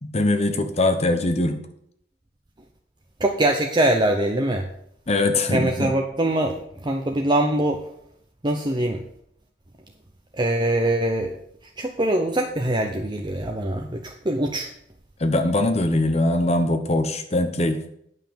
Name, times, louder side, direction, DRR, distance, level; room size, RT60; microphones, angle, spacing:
voice 1, 0.0-1.6 5.1-5.9 15.2-17.8, left 2 dB, 35° left, 7 dB, 0.9 m, -22 dB
voice 2, 3.2-4.7 5.5-6.6 6.8-7.8 8.4-9.0 10.4-11.3 11.8-14.7, right 1 dB, 25° right, 2 dB, 0.7 m, -23 dB
9.4 x 5.8 x 6.9 m, 0.71 s
head